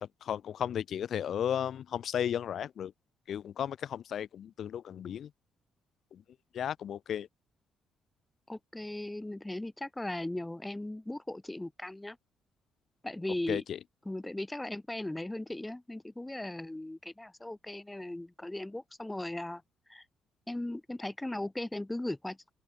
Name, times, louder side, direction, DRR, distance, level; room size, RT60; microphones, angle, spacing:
voice 1, 0.0-2.9 3.3-5.3 6.1-6.2 6.5-7.3 13.5-13.8, left 9 dB, 65° left, 0.7 m, -34 dB
voice 2, 8.5-12.2 13.0-13.6 14.1-19.6 19.9-20.0 20.5-22.4, left 1 dB, 10° left, 0.6 m, -37 dB
open air
cardioid pair, 90°, 0 cm